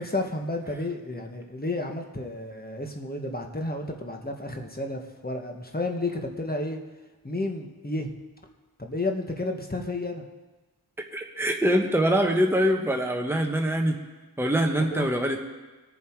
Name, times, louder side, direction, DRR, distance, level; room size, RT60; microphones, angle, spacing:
voice 1, 0.0-6.8 7.2-8.1 8.8-10.2 14.8-15.1, left 2 dB, 20° left, 3 dB, 1.4 m, -31 dB
voice 2, 11.1-14.0 14.4-15.4, equal, 5° right, 3 dB, 1.2 m, -24 dB
21.0 x 7.2 x 4.7 m, 1.2 s
wide cardioid pair, 60°, 40 cm